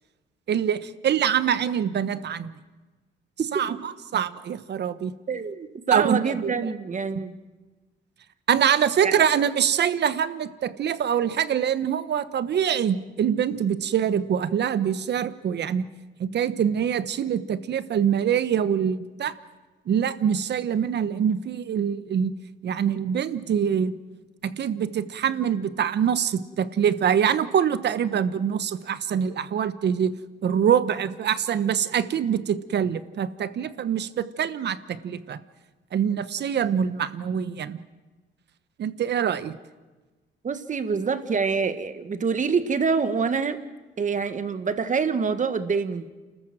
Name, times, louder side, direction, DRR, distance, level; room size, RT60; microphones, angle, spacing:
voice 1, 0.5-2.5 3.5-3.8 4.1-5.1 5.9-6.7 8.5-15.8 16.2-19.3 19.9-22.3 22.6-23.9 24.4-30.1 30.4-35.4 35.9-37.8 38.8-39.6, right 8 dB, 60° right, 14 dB, 1.1 m, -24 dB
voice 2, 5.3-7.3 9.0-9.2 40.4-43.6 44.0-46.1, right 5 dB, 40° right, 10 dB, 1.7 m, -26 dB
29.5 x 14.0 x 7.6 m, 1.2 s
cardioid pair, 90°, 20 cm